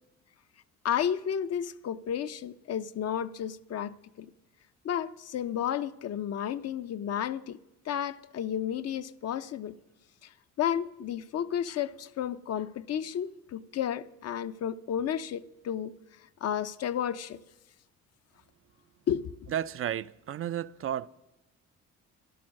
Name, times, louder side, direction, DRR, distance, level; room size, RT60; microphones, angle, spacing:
voice 1, 0.8-4.3 4.8-7.6 7.9-9.7 10.6-15.9 16.4-17.4 19.1-19.3, left 9 dB, 55° left, 0.6 m, -32 dB
voice 2, 19.5-21.1, right 10 dB, 45° right, 0.4 m, -32 dB
12.0 x 11.5 x 6.4 m
cardioid pair, 90°, 30 cm